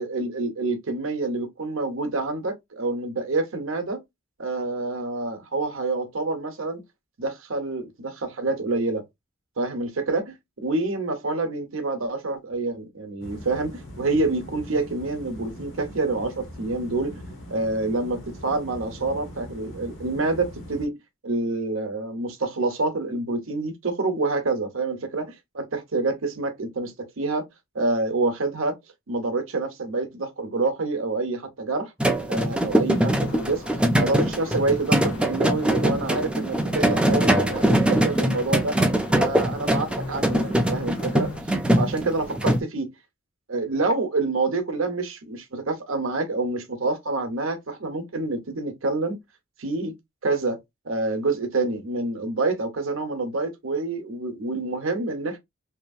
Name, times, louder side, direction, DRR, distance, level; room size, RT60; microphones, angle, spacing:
voice 1, 0.0-4.0 4.4-6.8 7.2-9.0 9.6-10.3 10.6-17.2 17.5-20.9 21.2-27.5 27.7-28.8 29.1-31.9 32.3-33.6 34.0-38.8 39.2-41.3 41.8-42.9 43.5-49.2 49.6-49.9 50.2-50.6 50.9-55.4, right 3 dB, 70° right, 0.8 m, -27 dB
sound 1, 13.2-20.9, equal, 60° left, 0.9 m, -41 dB
sound 2, 32.0-42.6, right 1 dB, 5° right, 0.3 m, -22 dB
sound 3, 32.9-41.4, left 4 dB, 90° left, 0.7 m, -42 dB
2.8 x 2.5 x 2.3 m
head